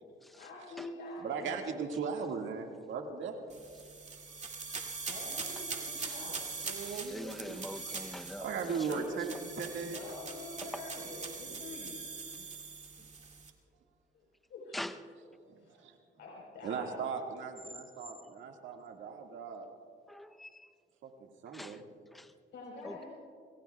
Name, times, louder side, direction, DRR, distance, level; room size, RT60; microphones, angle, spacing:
voice 1, 0.4-1.5 5.1-6.5 8.6-9.1 9.8-12.0 12.4-12.5 14.1-14.2 14.5-14.8 15.6-15.8 16.2-17.0 22.5-23.1, left 3 dB, 75° left, -5 dB, 4.3 m, -46 dB
voice 2, 1.2-3.4 6.6-7.6 8.4-10.0 11.2-11.6 15.4-16.0 16.6-19.7 21.0-21.8, right 5 dB, 75° right, 2 dB, 1.9 m, -38 dB
sound 1, 3.5-13.5, right 4 dB, 35° right, 2.3 m, -42 dB
voice 3, 6.0-9.4 10.6-10.9 14.7-15.0 20.1-20.7 21.5-21.8 22.1-22.3 22.8-23.0, left 1 dB, ahead, 9 dB, 0.7 m, -45 dB
28.0 x 22.0 x 2.3 m, 2.2 s
cardioid pair, 90°, 20 cm